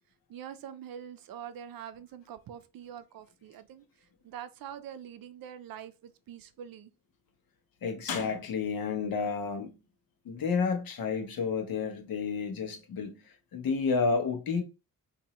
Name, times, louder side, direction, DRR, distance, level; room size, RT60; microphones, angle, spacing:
voice 1, 0.3-3.8 4.2-6.9, right 9 dB, 80° right, 0.5 m, -44 dB
voice 2, 7.8-9.8 10.2-14.6, left 5 dB, 85° left, 0.9 m, -31 dB
2.9 x 2.6 x 4.1 m
wide cardioid pair, 150°, 34 cm